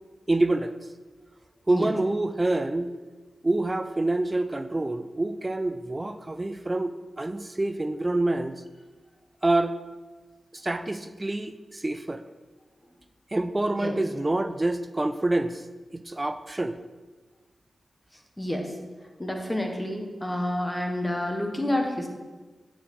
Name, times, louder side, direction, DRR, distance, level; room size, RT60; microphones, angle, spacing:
voice 1, 0.3-0.8 1.7-2.9 3.4-8.6 9.4-9.7 10.5-12.2 13.3-15.6 15.9-16.8, right 2 dB, 25° right, 11 dB, 0.4 m, -27 dB
voice 2, 18.4-18.7 19.2-22.1, left 1 dB, 15° left, 2 dB, 1.4 m, -29 dB
8.6 x 4.8 x 5.4 m, 1.3 s
cardioid pair, 65°, 0 cm